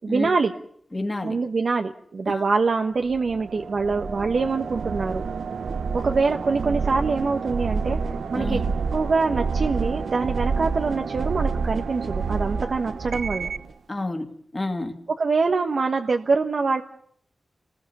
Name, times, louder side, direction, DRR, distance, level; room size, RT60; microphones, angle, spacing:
voice 1, 0.0-0.5 1.2-5.2 6.0-8.6 8.9-13.5 15.2-16.8, right 4 dB, 50° right, 1.3 m, -24 dB
voice 2, 0.9-1.4 2.3-2.4 8.3-8.7 13.9-15.0, left 2 dB, 20° left, 2.3 m, -30 dB
sound 1, 3.1-13.7, right 5 dB, 75° right, 1.1 m, -28 dB
29.5 x 20.0 x 6.9 m
wide cardioid pair, 175°, 0 cm